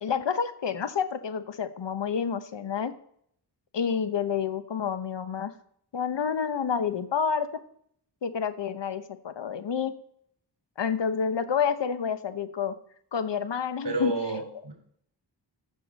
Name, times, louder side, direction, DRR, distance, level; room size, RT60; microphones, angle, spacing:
voice 1, 0.0-2.9 3.7-5.5 5.9-7.5 8.2-9.9 10.8-12.7 13.1-14.1, left 7 dB, 75° left, 11 dB, 0.9 m, -29 dB
voice 2, 13.8-14.7, right 2 dB, 65° right, 2 dB, 3.9 m, -29 dB
14.0 x 6.8 x 4.1 m, 0.67 s
wide cardioid pair, 95°, 44 cm